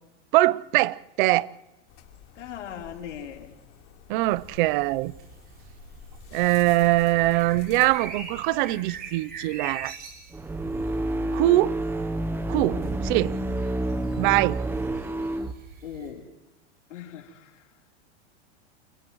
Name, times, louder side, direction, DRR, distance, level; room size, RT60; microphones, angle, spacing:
voice 1, 0.3-1.5 4.1-5.1 6.3-10.0 11.3-11.8 12.5-13.4 14.2-14.6, right 18 dB, 45° right, 0.6 m, -22 dB
sound 1, 1.9-8.5, left 7 dB, 35° left, 3.7 m, -48 dB
voice 2, 2.4-3.5 12.8-13.0 14.1-14.2 15.8-16.3 16.9-17.7, left 9 dB, 85° left, 3.8 m, -40 dB
sound 2, 4.3-16.1, right 5 dB, 25° right, 6.8 m, -44 dB
sound 3, 10.3-15.6, right 1 dB, 5° right, 0.8 m, -29 dB
30.0 x 29.5 x 3.1 m
supercardioid pair, 145°, 35 cm